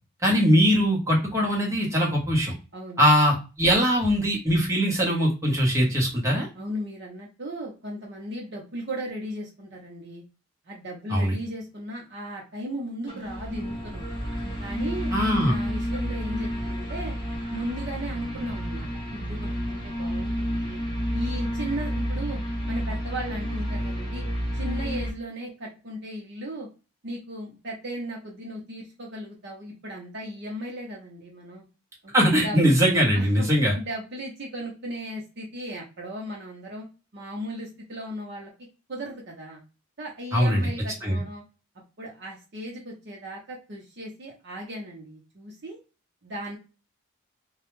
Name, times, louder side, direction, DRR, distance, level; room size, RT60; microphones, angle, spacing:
voice 1, 0.2-2.5 3.0-6.5 11.1-11.4 15.1-15.6 32.1-33.7 40.3-40.7 41.0-41.2, equal, 15° right, -3 dB, 0.8 m, -21 dB
voice 2, 2.7-3.0 6.5-10.2 10.7-14.1 14.6-15.1 15.4-17.2 17.5-20.8 21.1-22.4 22.7-24.3 24.5-26.7 27.0-31.6 32.0-32.6 33.1-33.5 33.8-36.9 37.1-38.5 38.9-39.6 40.0-41.4 42.0-45.8 46.2-46.6, equal, 50° right, -2 dB, 0.7 m, -36 dB
sound 1, 13.1-25.1, equal, 20° left, 0.8 m, -30 dB
2.3 x 2.0 x 3.0 m, 0.31 s
head